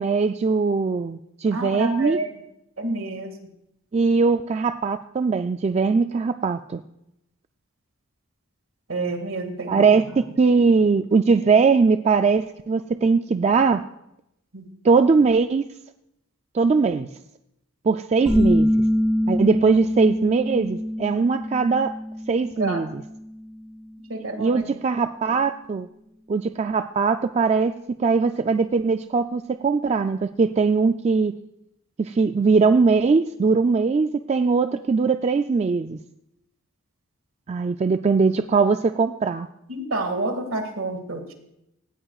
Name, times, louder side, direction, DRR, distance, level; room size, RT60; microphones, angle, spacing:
voice 1, 0.0-2.2 3.9-6.8 9.7-10.0 10.4-13.8 14.8-15.6 16.5-17.1 17.9-18.7 19.3-21.9 22.3-22.9 24.4-25.9 26.3-31.4 32.0-36.0 37.5-39.5, right 4 dB, 30° right, 9 dB, 0.3 m, -20 dB
voice 2, 1.5-2.3 2.8-3.4 8.9-10.1 14.5-14.7 22.6-22.8 24.1-24.7 39.7-41.3, right 2 dB, 70° right, 5 dB, 2.0 m, -29 dB
sound 1, 18.3-23.7, equal, 5° right, 3.1 m, -24 dB
17.5 x 14.0 x 2.4 m, 0.82 s
head